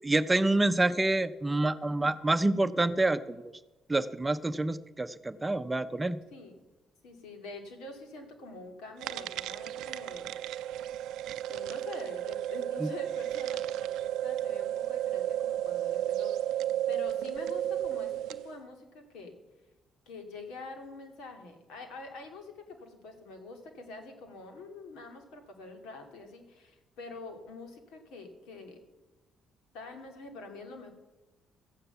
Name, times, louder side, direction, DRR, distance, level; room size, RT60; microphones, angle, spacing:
voice 1, 0.0-3.2 3.9-6.2 12.8-12.9, right 2 dB, 15° right, 12 dB, 0.7 m, -27 dB
voice 2, 7.0-10.3 11.5-19.3 20.1-28.8 29.7-30.9, left 2 dB, 80° left, 5 dB, 2.5 m, -46 dB
sound 1, 9.0-18.5, right 12 dB, 75° right, 0.5 m, -33 dB
14.0 x 8.8 x 6.9 m, 1.1 s
supercardioid pair, 65°, 0 cm